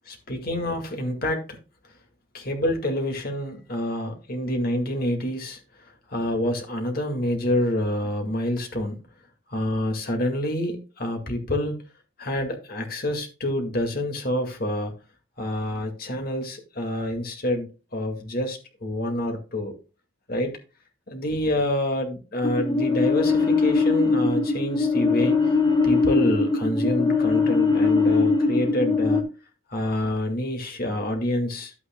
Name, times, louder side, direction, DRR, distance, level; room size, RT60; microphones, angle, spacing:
voice 1, 0.1-1.6 2.3-9.0 9.5-11.8 12.2-15.0 15.4-19.7 20.3-20.5 21.1-25.5 25.8-29.2 29.7-31.7, left 1 dB, 45° left, 2.1 m, -27 dB
sound 1, 22.4-29.2, left 4 dB, 20° left, 1.2 m, -21 dB
11.5 x 8.9 x 2.3 m
head